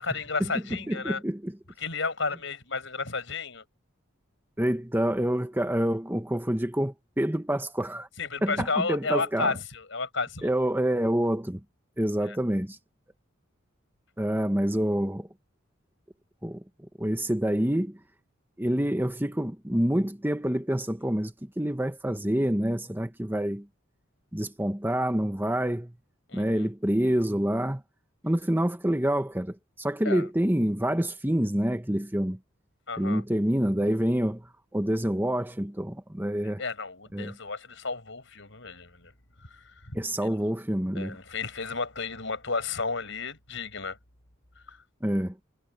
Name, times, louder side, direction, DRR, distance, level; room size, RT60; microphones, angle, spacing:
voice 1, 0.0-1.2 1.8-3.6 8.2-10.5 12.2-12.4 26.3-26.7 30.0-30.3 32.9-33.2 36.6-39.1 39.5-40.4 40.9-44.0 44.7-44.8, left 4 dB, 70° left, 7.3 m, -32 dB
voice 2, 0.9-1.6 4.6-8.1 8.4-9.5 10.4-11.6 12.0-12.8 14.2-15.3 16.4-16.6 17.0-18.0 18.6-23.7 24.3-25.9 26.3-27.8 28.2-32.4 33.0-34.5 34.7-36.6 37.1-37.4 39.9-41.2 45.0-45.4, right 1 dB, 10° right, 1.3 m, -27 dB
head